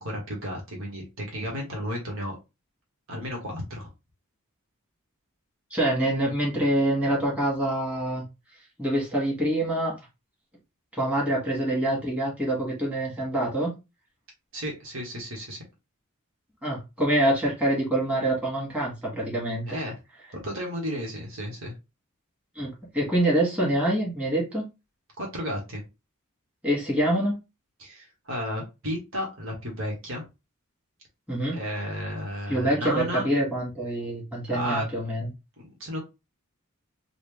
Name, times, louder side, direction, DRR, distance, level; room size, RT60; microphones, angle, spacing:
voice 1, 0.0-2.3 3.1-3.9 14.5-15.6 19.7-20.0 20.3-21.7 25.2-25.8 27.8-30.2 31.5-33.3 34.5-34.8 35.6-36.0, equal, 65° right, -1 dB, 1.5 m, -33 dB
voice 2, 5.7-8.2 8.8-9.9 10.9-13.7 16.6-19.7 22.6-24.6 26.6-27.4 31.3-31.6 32.5-35.3, right 1 dB, 5° right, -5 dB, 1.8 m, -25 dB
4.1 x 2.5 x 3.4 m, 0.26 s
head